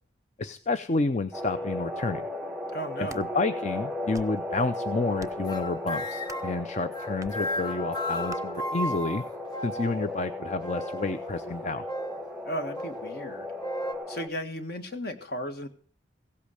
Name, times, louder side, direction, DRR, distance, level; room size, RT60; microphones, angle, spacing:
voice 1, 0.4-2.2 3.0-9.2 9.6-11.8, left 3 dB, 40° left, 11 dB, 0.6 m, -30 dB
sound 1, 1.3-14.3, left 1 dB, ahead, 1.1 m, -35 dB
voice 2, 2.7-3.2 12.5-13.5 14.1-15.7, equal, 55° left, 8 dB, 1.6 m, -35 dB
sound 2, 2.8-3.3 3.9-4.4 5.2-5.5 6.2-6.6 7.2-7.4 8.3-8.4, right 3 dB, 20° right, 0.7 m, -45 dB
sound 3, 5.5-6.6 6.9-10.1 10.6-11.2 11.9-12.2 12.8-13.0 13.6-13.9, left 1 dB, 20° left, 1.5 m, -35 dB
16.5 x 8.5 x 6.4 m, 0.42 s
head